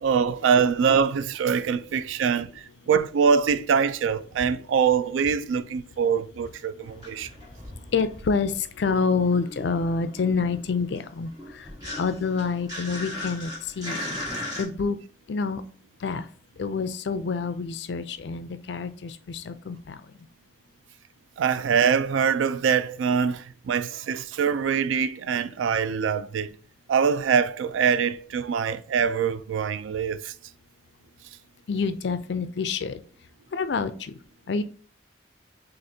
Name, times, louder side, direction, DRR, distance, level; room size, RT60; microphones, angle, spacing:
voice 1, 0.0-7.3 21.4-26.6 26.9-30.3, right 6 dB, 85° right, 0.3 m, -24 dB
sound 1, 6.8-8.8 9.0-14.6, left 1 dB, 20° right, 1.6 m, -37 dB
voice 2, 7.9-8.5 8.8-11.3 12.0-13.5 13.8-14.0 14.6-15.0 15.3-15.6 16.0-16.2 16.6-19.9 31.7-33.0 33.5-34.1 34.5-34.6, left 4 dB, 60° left, 0.4 m, -27 dB
6.2 x 2.5 x 2.7 m
head